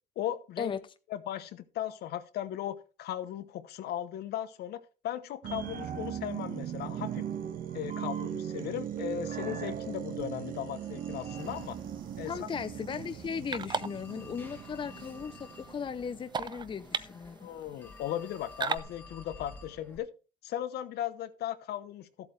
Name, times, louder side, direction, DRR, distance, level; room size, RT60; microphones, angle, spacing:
voice 1, 0.2-0.7 1.1-7.2 7.7-11.8 12.1-12.5 17.4-20.1 20.4-22.3, left 11 dB, 70° left, 1.0 m, -37 dB
sound 1, 5.4-16.5 16.9-17.0, right 9 dB, 55° right, 1.3 m, -39 dB
Telephone, 10.2-20.0, left 3 dB, 10° left, 1.6 m, -53 dB
sound 2, 11.4-18.8, right 5 dB, 25° right, 0.6 m, -40 dB
voice 2, 12.2-17.5, left 6 dB, 30° left, 0.7 m, -37 dB
13.5 x 8.1 x 3.3 m
cardioid pair, 110°, 17 cm